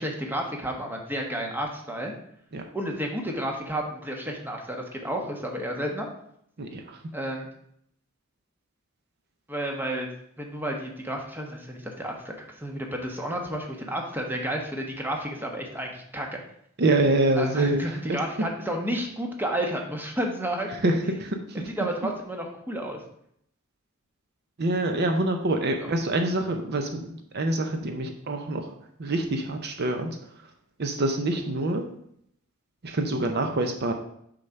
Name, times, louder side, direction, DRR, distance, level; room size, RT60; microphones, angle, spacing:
voice 1, 0.0-2.1 2.7-6.1 7.1-7.5 9.5-10.1 10.4-16.4 17.4-20.7 21.7-23.0 25.8-26.0, right 1 dB, 10° right, 1 dB, 1.1 m, -31 dB
voice 2, 6.6-7.0 16.8-17.8 20.8-21.7 24.6-28.7 29.0-30.2 30.8-31.8 32.8-33.9, right 2 dB, 55° right, 5 dB, 0.7 m, -26 dB
6.5 x 3.9 x 5.7 m, 0.70 s
head